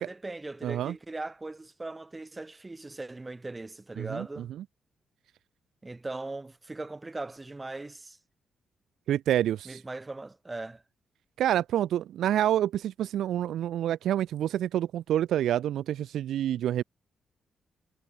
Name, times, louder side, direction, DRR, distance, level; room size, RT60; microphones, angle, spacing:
voice 1, 0.0-4.5 5.8-8.2 9.7-10.8, right 2 dB, 25° right, 7.1 m, -39 dB
voice 2, 0.6-0.9 4.0-4.3 9.1-9.8 11.4-16.8, right 11 dB, 80° right, 0.7 m, -27 dB
supercardioid pair, 60°, 0 cm